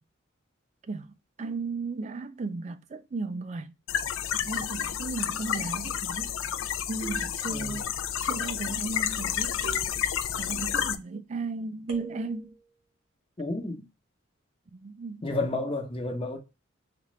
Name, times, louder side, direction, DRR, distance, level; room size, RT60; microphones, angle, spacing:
voice 1, 0.9-3.7 4.3-6.4 6.9-7.8 8.2-9.6 10.3-12.5 14.7-15.3, right 3 dB, 35° right, 0.3 m, -35 dB
sound 1, 3.9-11.0, left 9 dB, 90° left, 0.4 m, -30 dB
sound 2, 7.0-7.9 9.6-10.6 11.9-12.6, right 5 dB, 85° right, 1.5 m, -44 dB
voice 2, 7.5-7.8 13.4-13.9 15.2-16.4, left 2 dB, 25° left, 0.9 m, -31 dB
4.2 x 2.5 x 3.1 m
head